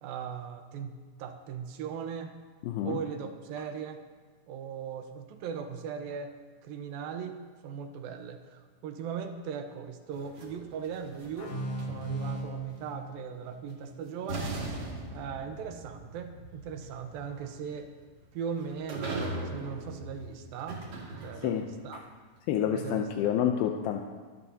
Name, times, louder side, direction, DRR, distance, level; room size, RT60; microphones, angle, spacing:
voice 1, 0.0-0.9 1.2-2.4 2.8-4.0 4.5-6.4 6.6-11.6 11.9-14.8 15.1-17.9 18.3-19.2 19.5-20.8 21.2-22.0 22.7-23.3, right 7 dB, 80° right, 6 dB, 2.7 m, -39 dB
voice 2, 2.6-3.0 21.4-22.0 22.5-24.0, left 9 dB, 85° left, 3 dB, 2.6 m, -29 dB
sound 1, 10.1-12.5 13.7-13.8 14.3-21.8, right 2 dB, 45° right, 2.7 m, -40 dB
sound 2, 11.4-14.8, right 2 dB, 45° left, 2.5 m, -39 dB
24.0 x 12.0 x 2.8 m, 1.5 s
omnidirectional pair, 4.2 m